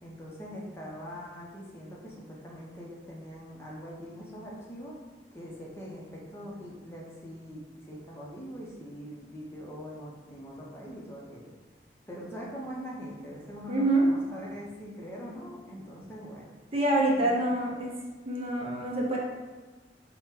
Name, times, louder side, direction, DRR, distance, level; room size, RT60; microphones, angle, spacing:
voice 1, 0.0-5.0 5.3-11.5 12.1-16.4 17.2-17.3, equal, 15° left, -4 dB, 0.6 m, -42 dB
voice 2, 13.7-14.1 16.7-17.9 18.2-19.2, right 2 dB, 35° right, -2 dB, 0.5 m, -26 dB
3.6 x 2.1 x 4.3 m, 1.2 s
head